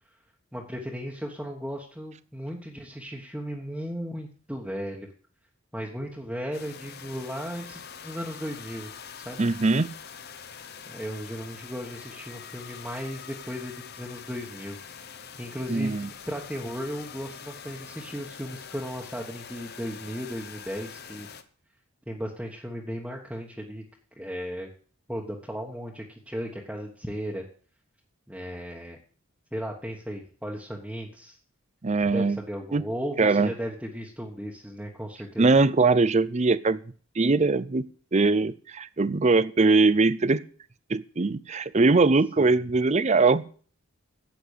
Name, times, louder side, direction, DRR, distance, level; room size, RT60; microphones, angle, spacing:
voice 1, 0.5-5.1 5.7-8.9 9.2-9.4 10.9-15.1 15.4-16.0 16.3-21.3 22.1-23.8 24.2-24.7 25.1-27.4 28.3-29.0 29.5-31.4 32.1-35.6 42.4-42.6, equal, 5° right, -2 dB, 1.3 m, -36 dB
sound 1, 6.5-21.4, left 7 dB, 45° left, 1.0 m, -44 dB
voice 2, 9.4-9.9 15.7-16.1 31.8-32.4 32.7-32.8 33.2-33.5 35.4-36.8 37.2-37.8 38.1-40.4 40.9-43.4, right 3 dB, 30° right, 17 dB, 0.5 m, -21 dB
10.5 x 8.0 x 8.2 m, 0.43 s
head